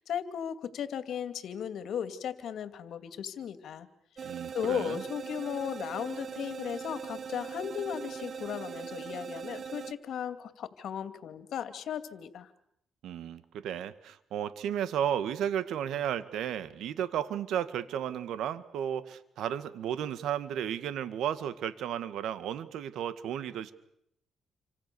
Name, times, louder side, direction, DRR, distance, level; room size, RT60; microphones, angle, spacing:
voice 1, 0.0-3.9 4.2-4.3 4.5-12.5, left 8 dB, 70° left, 11 dB, 2.6 m, -36 dB
sound 1, 4.2-9.9, right 6 dB, 50° right, 1.4 m, -40 dB
voice 2, 4.2-5.0 13.0-23.7, right 9 dB, 80° right, 13 dB, 1.9 m, -33 dB
28.5 x 26.0 x 7.1 m, 0.74 s
cardioid pair, 90°, 0 cm